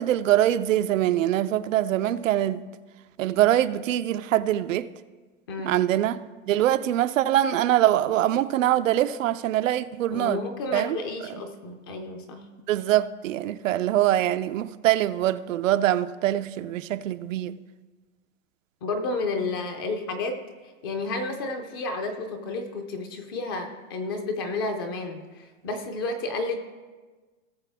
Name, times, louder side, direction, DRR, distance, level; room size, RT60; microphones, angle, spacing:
voice 1, 0.0-2.6 3.2-4.9 5.6-10.4 10.7-11.0 12.7-17.6, right 12 dB, 85° right, 0.6 m, -23 dB
voice 2, 10.1-12.5 18.8-20.4 20.8-26.6, left 3 dB, 20° left, 0.4 m, -31 dB
17.5 x 6.7 x 3.5 m
supercardioid pair, 175°, 38 cm